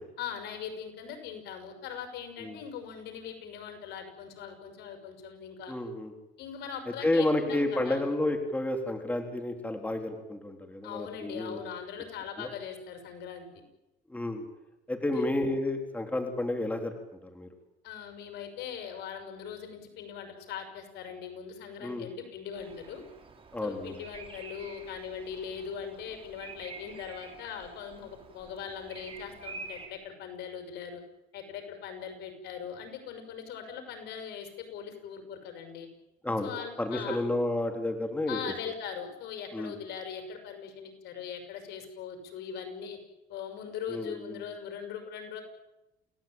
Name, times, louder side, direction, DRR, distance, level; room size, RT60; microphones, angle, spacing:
voice 1, 0.2-5.7 6.4-8.0 10.8-13.6 15.1-15.2 17.8-23.0 23.6-31.0 31.3-35.9 36.4-37.2 38.3-43.0 43.3-45.4, left 7 dB, 80° left, 6 dB, 6.1 m, -40 dB
voice 2, 5.7-6.1 7.0-11.6 12.4-12.5 14.1-14.5 14.9-16.9 17.3-17.5 21.8-22.1 23.5-24.0 36.2-36.5 36.8-38.4 39.5-39.7 43.9-44.4, left 1 dB, 10° left, 4 dB, 3.9 m, -30 dB
Bird vocalization bird call bird song, 22.6-29.9, right 4 dB, 35° right, 5.9 m, -48 dB
29.0 x 17.0 x 9.1 m, 0.96 s
cardioid pair, 110°, 17 cm